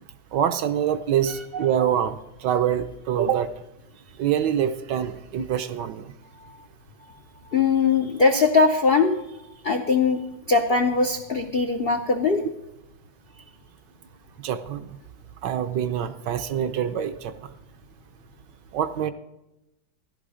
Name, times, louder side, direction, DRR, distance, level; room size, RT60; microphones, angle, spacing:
voice 1, 0.3-3.5 4.2-6.1 14.4-14.9 15.4-17.3 18.7-19.1, right 9 dB, 70° right, 9 dB, 1.2 m, -25 dB
voice 2, 7.5-9.1 9.6-10.2 10.5-12.4, left 4 dB, 75° left, 5 dB, 0.5 m, -20 dB
14.5 x 11.0 x 4.9 m, 0.93 s
omnidirectional pair, 2.2 m